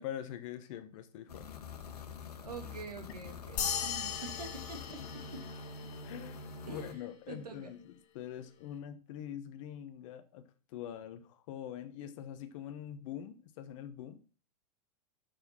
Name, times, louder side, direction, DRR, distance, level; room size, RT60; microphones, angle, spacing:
voice 1, 0.0-1.5 6.0-14.2, left 10 dB, 55° left, 9 dB, 1.1 m, -44 dB
sound 1, 1.3-6.9, left 5 dB, 75° left, 1.7 m, -46 dB
voice 2, 2.4-5.0 6.7-7.0 7.3-7.7, right 4 dB, 80° right, 5 dB, 2.4 m, -46 dB
sound 2, 3.6-6.3, left 8 dB, 40° left, 2.3 m, -38 dB
6.7 x 6.6 x 5.8 m, 0.38 s
hypercardioid pair, 100°, 20 cm